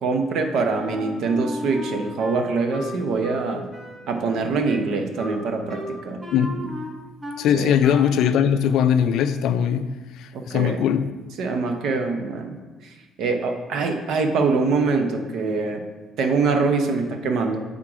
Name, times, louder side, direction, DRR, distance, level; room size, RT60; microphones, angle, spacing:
voice 1, 0.0-3.6 4.1-6.2 7.5-7.8 10.3-10.9 11.4-12.6 12.8-15.8 16.2-17.6, right 4 dB, 60° right, 0.7 m, -24 dB
Wind instrument woodwind instrument, 0.7-7.5 7.8-8.3, equal, 15° right, 0.7 m, -36 dB
voice 2, 6.3-6.6 7.4-11.1, left 8 dB, 65° left, 0.3 m, -21 dB
7.5 x 3.7 x 4.8 m
cardioid pair, 170°, 0 cm